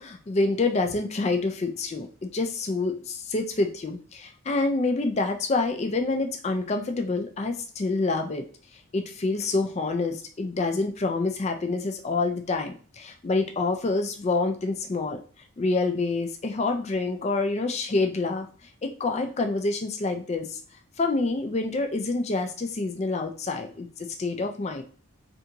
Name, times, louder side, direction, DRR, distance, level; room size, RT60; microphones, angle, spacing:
voice 1, 0.0-8.5 8.9-15.2 15.6-20.6 21.0-24.8, left 3 dB, 30° left, 5 dB, 0.3 m, -27 dB
3.4 x 2.8 x 2.6 m, 0.42 s
head